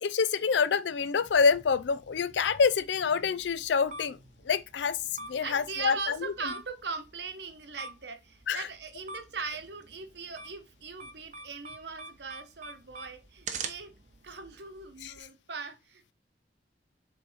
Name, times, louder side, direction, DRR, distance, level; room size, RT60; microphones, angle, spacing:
voice 1, 0.0-4.2 4.4-5.0 5.3-6.3 8.5-8.7 15.0-15.3, left 5 dB, 75° left, 0.4 m, -27 dB
sound 1, 1.3-15.2, right 4 dB, 40° right, 0.7 m, -46 dB
voice 2, 5.4-13.9 14.2-16.1, right 4 dB, 70° right, 1.0 m, -40 dB
7.4 x 3.3 x 4.0 m
head